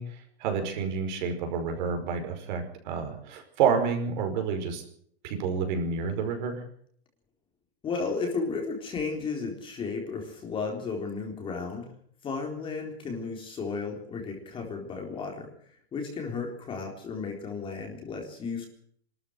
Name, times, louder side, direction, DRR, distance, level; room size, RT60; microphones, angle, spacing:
voice 1, 0.0-4.8 5.2-6.6, right 6 dB, 45° right, 5 dB, 5.3 m, -29 dB
voice 2, 7.8-11.9 12.2-15.5 15.9-18.7, left 4 dB, 15° left, 2 dB, 3.9 m, -34 dB
24.5 x 13.5 x 8.0 m, 0.63 s
supercardioid pair, 165°, 31 cm